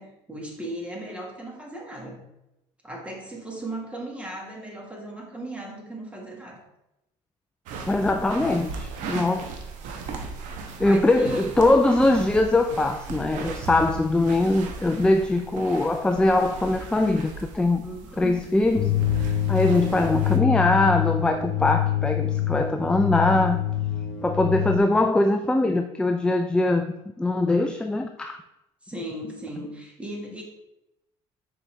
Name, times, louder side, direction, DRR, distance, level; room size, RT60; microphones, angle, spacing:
voice 1, 0.0-2.3 2.8-6.6 10.8-11.6 17.8-18.4 28.8-30.4, right 1 dB, 10° right, -1 dB, 1.7 m, -37 dB
sound 1, 7.7-20.4, right 4 dB, 75° right, 1.0 m, -37 dB
voice 2, 7.9-9.5 10.8-17.8 18.2-18.9 19.2-23.6 24.2-26.9 27.2-28.4, left 2 dB, 5° left, 7 dB, 0.3 m, -22 dB
sound 2, 18.7-24.8, left 12 dB, 65° left, 0.9 m, -25 dB
6.8 x 4.7 x 3.3 m, 0.88 s
cardioid pair, 115°, 13 cm